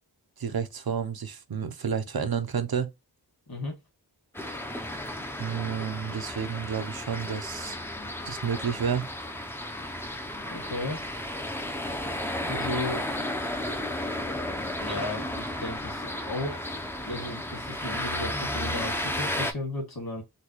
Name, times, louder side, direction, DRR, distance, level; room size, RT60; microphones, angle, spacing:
voice 1, 0.4-2.9 5.4-7.8 8.2-9.1, right 7 dB, 55° right, 0.6 m, -30 dB
sound 1, 4.3-19.5, left 1 dB, 5° left, 0.5 m, -33 dB
voice 2, 10.4-11.0 12.4-13.1 14.8-16.7 17.1-20.2, left 2 dB, 55° left, 1.9 m, -34 dB
4.0 x 2.2 x 2.9 m
wide cardioid pair, 50°, 43 cm